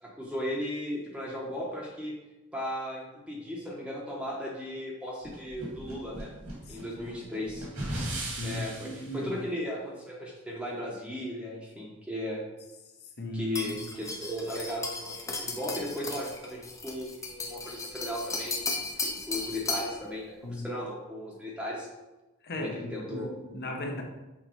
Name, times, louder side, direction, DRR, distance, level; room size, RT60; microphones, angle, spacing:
voice 1, 0.0-2.1 2.5-6.3 6.7-7.7 8.4-12.4 13.3-21.9 22.5-23.3, left 1 dB, 5° right, -4 dB, 1.0 m, -36 dB
sound 1, 5.2-9.1, right 1 dB, 70° right, 2.1 m, -37 dB
voice 2, 6.7-7.1 8.2-9.3 13.2-13.8 20.4-20.8 22.4-24.0, left 1 dB, 50° left, 2 dB, 1.0 m, -37 dB
sound 2, 13.6-20.0, left 3 dB, 15° left, 0.7 m, -35 dB
6.2 x 4.1 x 4.6 m, 1.0 s
head